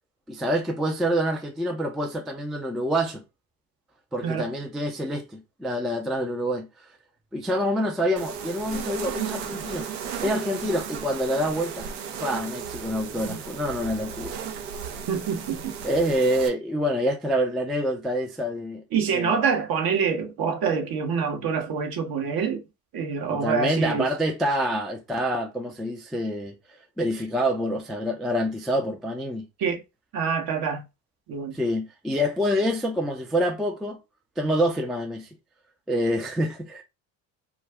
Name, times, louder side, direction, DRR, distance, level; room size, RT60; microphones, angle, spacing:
voice 1, 0.3-3.2 4.1-6.7 7.3-9.9 10.2-11.9 12.2-14.4 15.8-18.8 19.1-19.4 23.3-26.5 27.0-29.4 31.5-34.0 34.4-35.3 35.9-36.8, equal, ahead, 0.3 m, -26 dB
sound 1, 8.2-16.5, right 7 dB, 75° right, 0.7 m, -35 dB
voice 2, 15.1-15.7 18.9-22.6 22.9-24.1 29.6-29.8 30.1-30.8 31.3-31.6, right 6 dB, 45° right, 0.8 m, -26 dB
2.3 x 2.3 x 3.3 m
hypercardioid pair, 60°, 49 cm